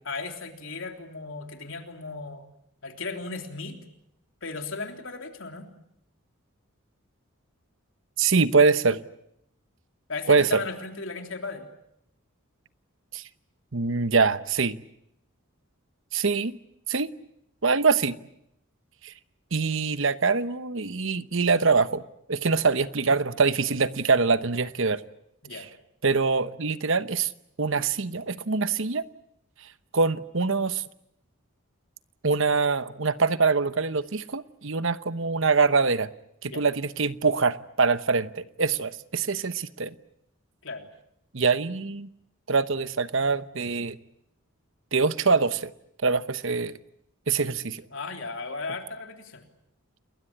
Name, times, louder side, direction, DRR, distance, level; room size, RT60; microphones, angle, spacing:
voice 1, 0.1-2.4 2.8-3.8 4.4-5.7 10.1-11.7 25.4-25.7 36.4-36.7 40.6-40.9 47.9-49.4, left 3 dB, 65° left, 4 dB, 3.5 m, -36 dB
voice 2, 8.2-9.0 10.3-10.6 13.1-13.2 13.7-14.8 16.1-16.6 16.9-17.1 17.6-18.2 19.0-19.1 19.5-22.0 22.3-25.0 25.5-25.6 26.0-27.3 27.6-29.0 29.9-30.8 32.2-36.1 36.4-39.9 41.3-42.1 42.5-44.0 44.9-45.7 46.0-46.7 47.3-47.8, right 4 dB, 65° right, 13 dB, 1.0 m, -24 dB
29.5 x 21.0 x 8.7 m, 0.78 s
head